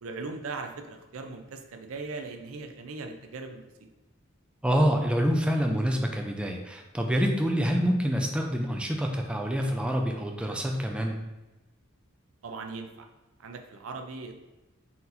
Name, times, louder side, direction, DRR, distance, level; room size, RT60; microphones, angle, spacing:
voice 1, 0.0-3.7 12.4-13.1 13.4-14.4, right 3 dB, 85° right, 5 dB, 0.5 m, -39 dB
voice 2, 4.6-11.2, equal, 5° right, 2 dB, 0.4 m, -26 dB
4.2 x 4.1 x 2.6 m, 1.1 s
head